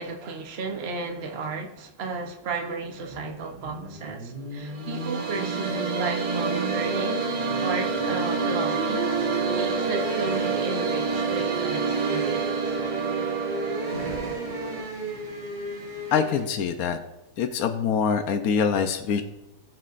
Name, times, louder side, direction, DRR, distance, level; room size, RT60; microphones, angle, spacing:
voice 1, 0.0-7.3 7.6-12.8, right 4 dB, 60° right, 0.6 m, -34 dB
sound 1, 2.8-16.5, right 2 dB, 30° right, 3.2 m, -35 dB
sound 2, 4.6-14.8, right 4 dB, 75° right, 1.9 m, -28 dB
voice 2, 16.1-17.0 17.4-19.2, left 6 dB, 75° left, 0.8 m, -24 dB
19.0 x 6.6 x 2.5 m
omnidirectional pair, 2.4 m